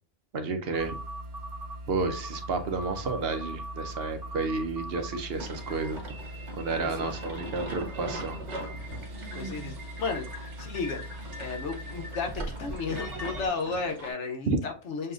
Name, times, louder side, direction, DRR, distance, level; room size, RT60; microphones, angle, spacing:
voice 1, 0.3-0.9 1.9-6.0 6.6-8.4 14.5-14.6, right 4 dB, 65° right, 6 dB, 0.9 m, -31 dB
sound 1, 0.7-13.5, equal, 20° right, 0.7 m, -40 dB
sound 2, 5.3-14.1, right 1 dB, 90° right, 1.3 m, -42 dB
voice 2, 6.8-7.3 8.9-9.0 9.3-15.1, left 4 dB, 85° left, 3 dB, 1.1 m, -34 dB
6.6 x 2.5 x 2.5 m, 0.37 s
omnidirectional pair, 1.2 m